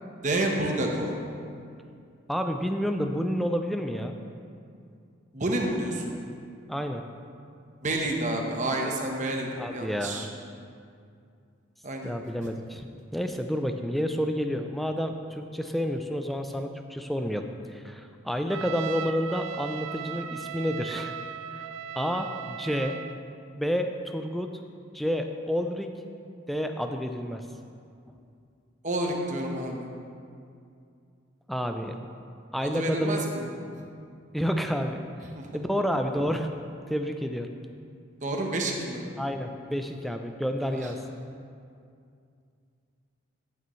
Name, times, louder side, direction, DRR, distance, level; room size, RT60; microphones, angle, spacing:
voice 1, 0.2-1.1 5.3-6.1 7.8-10.3 11.8-12.1 28.8-29.9 32.6-33.5 35.4-35.5 38.2-39.0 40.7-40.9, right 1 dB, 40° right, 1 dB, 1.0 m, -29 dB
voice 2, 2.3-4.1 6.7-7.0 9.6-10.3 12.0-12.8 13.1-21.1 21.5-21.6 22.0-23.0 23.6-24.5 24.9-25.9 26.5-27.5 31.5-31.9 32.5-33.2 34.3-35.0 35.5-36.5 36.9-37.5 39.2-41.0, equal, ahead, 5 dB, 0.4 m, -29 dB
Trumpet, 18.5-23.2, right 8 dB, 90° right, 0.3 m, -37 dB
14.5 x 6.8 x 3.1 m, 2.4 s
head